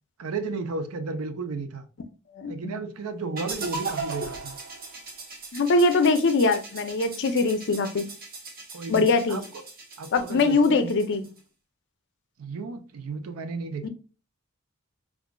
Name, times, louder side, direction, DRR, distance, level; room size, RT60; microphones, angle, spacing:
voice 1, 0.2-1.9 2.5-4.6 8.7-9.6 10.0-10.9 12.4-13.9, right 3 dB, 75° right, 0.5 m, -33 dB
voice 2, 2.4-2.7 5.5-8.1 8.9-9.4 10.1-11.2 13.8-13.9, left 3 dB, 55° left, 0.5 m, -22 dB
sound 1, 3.4-11.4, right 3 dB, 45° right, 0.9 m, -38 dB
4.9 x 2.4 x 2.2 m
head